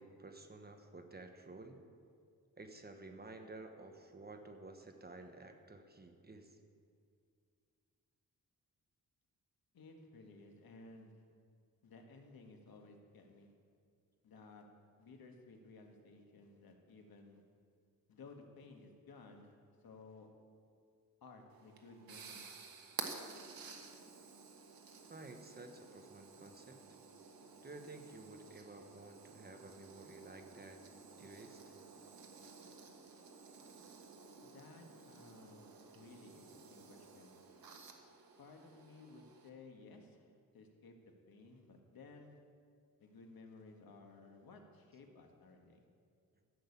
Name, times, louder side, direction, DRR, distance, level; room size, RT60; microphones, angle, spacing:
voice 1, 0.0-1.8 2.6-6.5 25.1-26.8 27.6-30.8 31.2-31.6 32.7-32.8, right 2 dB, 25° right, 5 dB, 1.1 m, -53 dB
voice 2, 9.7-11.2 11.8-13.5 14.2-14.7 15.0-17.4 18.1-19.5 19.8-20.3 21.2-22.5 34.4-37.4 38.4-42.4 43.0-45.8, left 3 dB, 85° left, 3 dB, 1.6 m, -57 dB
sound 1, 21.5-39.5, right 5 dB, 85° right, 1.4 m, -53 dB
13.5 x 6.4 x 8.4 m, 2.3 s
wide cardioid pair, 145°, 35 cm